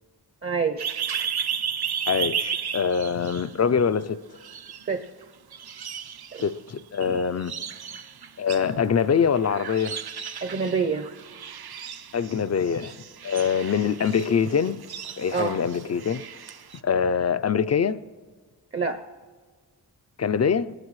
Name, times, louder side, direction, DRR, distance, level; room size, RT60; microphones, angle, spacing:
voice 1, 0.4-0.9 4.9-5.0 6.3-6.4 10.4-11.1 15.3-15.6 18.7-19.0, right 5 dB, 30° right, 0.6 m, -26 dB
sound 1, 0.8-4.0 4.4-5.2 5.5-16.8, right 8 dB, 70° right, 0.7 m, -34 dB
voice 2, 2.1-4.2 6.4-7.5 8.4-10.0 12.1-12.9 13.2-14.8 15.2-16.2 16.8-18.0 20.2-20.7, left 6 dB, 40° left, 0.4 m, -24 dB
22.0 x 19.0 x 3.2 m
wide cardioid pair, 95°, 39 cm